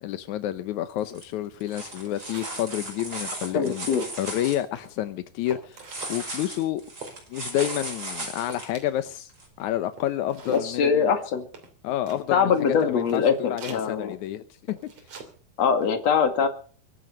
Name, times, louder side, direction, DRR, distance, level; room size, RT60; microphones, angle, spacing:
voice 1, 0.0-3.9 4.2-6.8 7.3-9.3 9.6-11.1 11.8-12.5 12.8-14.9, left 12 dB, 75° left, 11 dB, 1.8 m, -29 dB
sound 1, 1.1-1.2 1.6-4.6 5.8-8.7 9.4-9.5, right 2 dB, 25° right, 5.7 m, -36 dB
sound 2, 1.7-1.8 2.0-2.7 3.1-3.2 3.4-4.1 4.6-5.0 5.5-6.2 7.0-7.2 7.6-7.8 8.1-8.2 8.5-9.2 9.6-9.7 9.9-10.7 11.5-12.2 12.7-12.8 13.0-13.3 13.6-13.8 14.7-15.3 15.6-15.8, right 4 dB, 45° right, 3.9 m, -43 dB
voice 2, 3.5-4.1 10.5-11.5 12.3-14.2 15.6-16.5, left 6 dB, 50° left, 7 dB, 3.0 m, -22 dB
23.5 x 9.3 x 6.5 m, 0.43 s
omnidirectional pair, 4.3 m